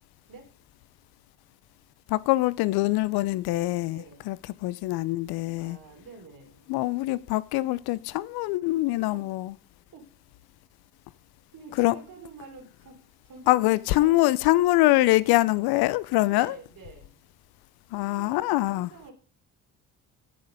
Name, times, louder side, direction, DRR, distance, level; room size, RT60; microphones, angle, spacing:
voice 1, 2.1-4.4 4.6-5.8 6.7-9.5 11.8-12.0 13.5-16.6 17.9-18.9, left 18 dB, 60° left, 0.7 m, -24 dB
voice 2, 3.8-4.2 5.6-6.8 9.1-9.3 9.9-10.1 11.5-13.7 14.0-14.3 16.3-17.2 18.0-19.1, right 4 dB, 50° right, 4.0 m, -48 dB
16.5 x 6.7 x 5.3 m
hypercardioid pair, 55°, 42 cm